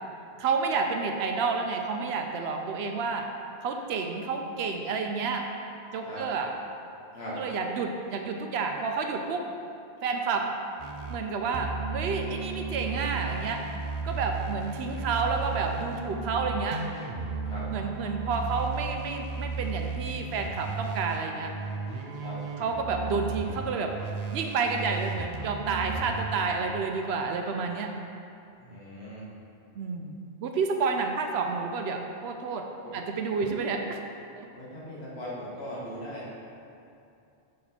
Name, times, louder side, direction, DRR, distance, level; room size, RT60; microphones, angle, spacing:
voice 1, 0.4-3.3 3.6-5.4 5.9-6.5 7.3-9.4 10.0-10.5 11.1-13.6 14.0-16.8 17.7-21.5 22.6-23.9 24.3-27.9 29.8-32.7 32.9-34.0 34.4-34.5, right 4 dB, 75° right, 4 dB, 0.8 m, -30 dB
sound 1, 10.8-11.2 11.5-26.7, right 4 dB, 50° right, 0.5 m, -35 dB
voice 2, 28.6-29.3 32.8-33.0 33.4-33.5 34.5-36.3, equal, 70° left, -7 dB, 1.7 m, -39 dB
6.2 x 4.3 x 4.1 m, 2.6 s
omnidirectional pair, 1.1 m